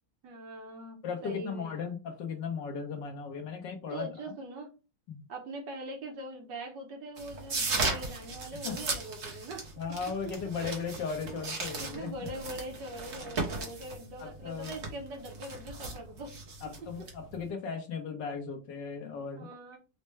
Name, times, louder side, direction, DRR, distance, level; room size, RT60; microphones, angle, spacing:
voice 1, 0.2-1.9 3.9-4.7 5.3-9.6 10.6-10.8 11.3-11.4 11.8-16.3 19.3-19.8, right 1 dB, 70° right, 1 dB, 1.6 m, -42 dB
voice 2, 1.0-4.1 5.1-5.2 8.6-8.8 9.8-12.3 14.2-14.7 16.6-19.8, left 5 dB, 75° left, 3 dB, 1.6 m, -37 dB
sound 1, 7.2-17.5, right 3 dB, 45° right, 1.1 m, -37 dB
4.3 x 2.2 x 3.1 m, 0.30 s
omnidirectional pair, 2.0 m